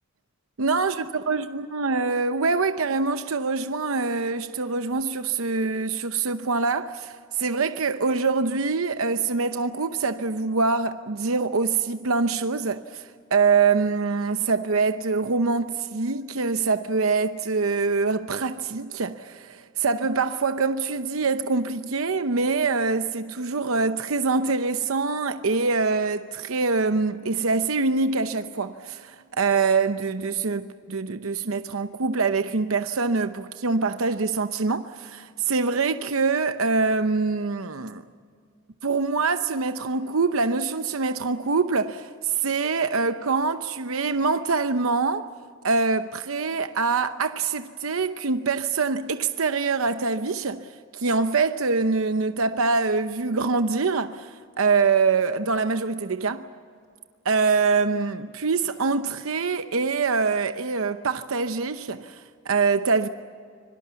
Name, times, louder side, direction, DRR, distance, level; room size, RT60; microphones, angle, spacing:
voice 1, 0.6-38.0 38.8-45.3 45.6-56.5 57.2-63.1, right 4 dB, 85° right, 0.8 m, -24 dB
26.0 x 23.5 x 7.0 m
head